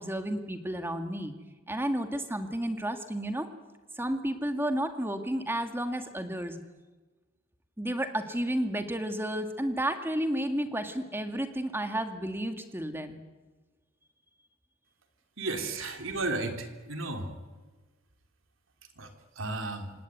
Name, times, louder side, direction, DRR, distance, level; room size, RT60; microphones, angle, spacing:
voice 1, 0.0-1.3 1.7-3.5 4.0-6.6 7.8-13.2, right 1 dB, 10° right, 6 dB, 2.1 m, -32 dB
voice 2, 15.4-17.3 19.0-19.1 19.4-19.9, right 2 dB, 75° right, 5 dB, 3.5 m, -33 dB
27.0 x 18.0 x 9.5 m, 1.3 s
head